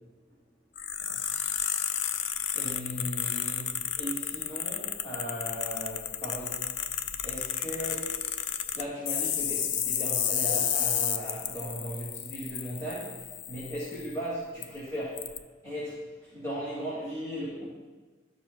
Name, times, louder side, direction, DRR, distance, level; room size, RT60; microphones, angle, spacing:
sound 1, 0.8-14.1 14.6-14.7 15.2-15.4, left 9 dB, 75° left, 0.4 m, -32 dB
voice 1, 2.5-6.6 7.2-8.1 8.7-17.7, equal, 20° left, -10 dB, 2.3 m, -37 dB
13.0 x 6.3 x 2.3 m, 1.3 s
head